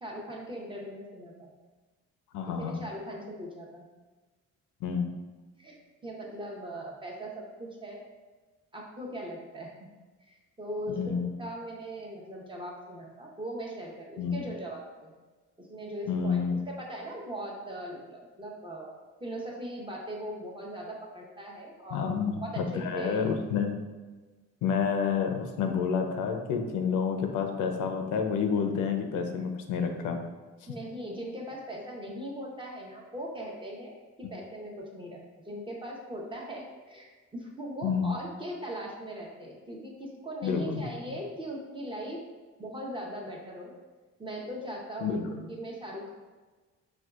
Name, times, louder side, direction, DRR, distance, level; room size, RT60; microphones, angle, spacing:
voice 1, 0.0-1.5 2.6-3.9 5.6-8.0 8.7-9.9 10.2-15.1 15.6-23.3 30.7-42.2 42.6-43.7 44.2-46.1, right 1 dB, 15° right, -2 dB, 0.7 m, -40 dB
voice 2, 2.3-2.8 4.8-5.1 11.0-11.3 14.2-14.4 16.1-16.6 21.9-23.8 24.6-30.2 37.8-38.1 40.4-40.8 45.0-45.3, left 6 dB, 85° left, 5 dB, 0.5 m, -29 dB
4.2 x 2.3 x 2.4 m, 1.3 s
cardioid pair, 90°, 30 cm